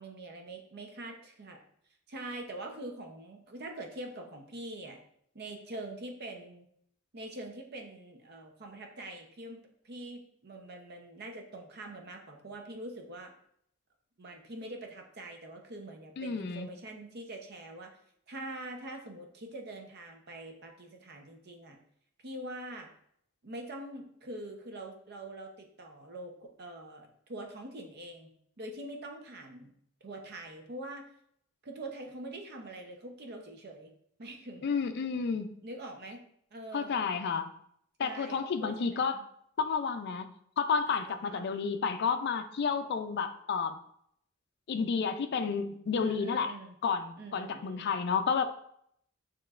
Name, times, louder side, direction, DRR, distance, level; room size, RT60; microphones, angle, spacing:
voice 1, 0.0-1.6 2.1-5.0 5.3-6.7 7.1-9.6 9.8-13.3 14.2-17.9 18.3-21.8 22.2-22.9 23.4-28.3 28.6-29.7 30.0-31.1 31.6-33.9 34.2-34.7 35.6-36.2 36.5-37.0 38.0-39.2 41.0-41.5 46.0-46.8 47.2-47.9, right 1 dB, 55° right, 3 dB, 0.7 m, -44 dB
voice 2, 16.2-16.7 34.6-35.5 36.7-37.5 38.0-39.2 39.6-40.3 40.6-43.8 44.7-46.5 46.8-48.5, left 5 dB, 55° left, 9 dB, 0.4 m, -31 dB
6.6 x 3.0 x 2.4 m, 0.69 s
head